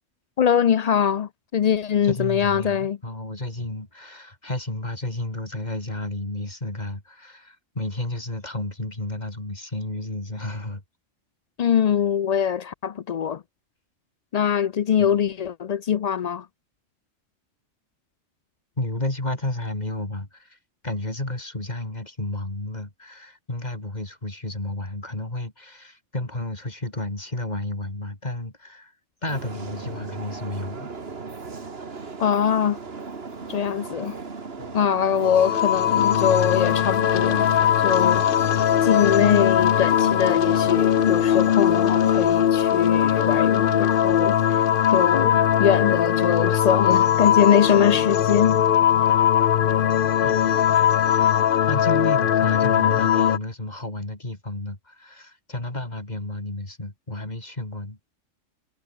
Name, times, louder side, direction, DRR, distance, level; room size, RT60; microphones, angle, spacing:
voice 1, 0.4-3.0 11.6-13.4 14.3-16.5 32.2-32.8 33.5-34.2 34.7-37.5 37.8-38.3 38.8-44.6 44.9-48.6, left 8 dB, 85° left, 0.3 m, -22 dB
voice 2, 2.0-10.8 15.0-15.2 18.8-20.6 20.8-28.9 29.2-30.9 34.6-34.8 50.2-58.0, left 1 dB, 35° left, 4.0 m, -32 dB
sound 1, 29.3-42.3, right 4 dB, 50° right, 2.1 m, -37 dB
sound 2, 35.2-53.4, left 10 dB, 55° left, 0.7 m, -20 dB
omnidirectional pair, 1.3 m